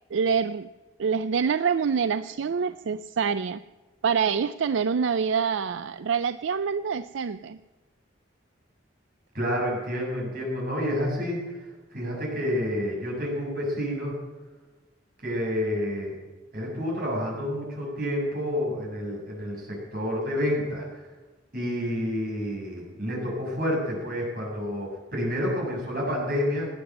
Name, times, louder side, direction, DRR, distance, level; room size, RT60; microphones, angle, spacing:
voice 1, 0.1-0.7 1.0-3.6 4.0-7.6, right 6 dB, 75° right, 13 dB, 0.4 m, -26 dB
voice 2, 9.3-11.4 11.9-14.2 15.2-16.2 16.5-21.0 21.5-26.7, equal, 45° right, -2 dB, 7.1 m, -29 dB
17.5 x 9.7 x 7.8 m, 1.2 s
head